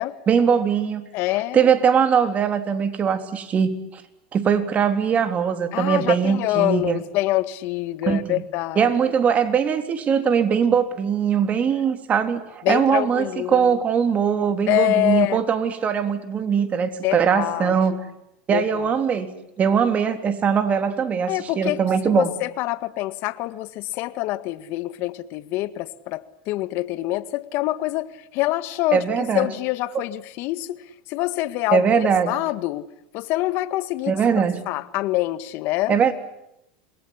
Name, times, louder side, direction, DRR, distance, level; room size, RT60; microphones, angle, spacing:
voice 1, 0.3-1.1 1.5-4.0 4.3-7.0 8.1-8.4 8.8-18.0 18.5-19.3 19.6-22.3 28.9-29.5 29.9-30.0 31.7-32.4 34.1-34.6 35.9-36.1, right 7 dB, 30° right, 8 dB, 3.5 m, -21 dB
voice 2, 1.1-1.7 5.7-8.9 12.6-13.7 14.7-15.4 17.0-18.0 18.5-18.9 21.3-21.8 22.0-29.0 29.3-30.8 31.1-31.8 32.3-32.9 33.1-34.2 34.7-36.0, left 17 dB, 55° left, 14 dB, 1.8 m, -25 dB
27.5 x 22.0 x 9.9 m, 0.82 s
hypercardioid pair, 105°, 5 cm